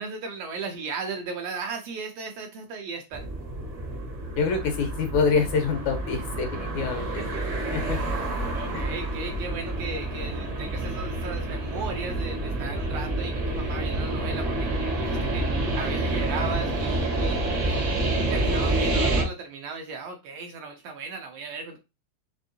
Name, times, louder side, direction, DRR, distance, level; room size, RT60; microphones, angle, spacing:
voice 1, 0.0-3.2 7.2-7.7 8.5-15.5 15.7-17.8 18.3-21.8, right 4 dB, 75° right, 1.5 m, -36 dB
sound 1, 3.1-19.2, right 2 dB, 50° right, 0.8 m, -28 dB
voice 2, 4.4-7.4 7.7-8.0 8.7-8.8, left 5 dB, 75° left, 2.5 m, -26 dB
5.3 x 3.6 x 2.6 m
omnidirectional pair, 3.4 m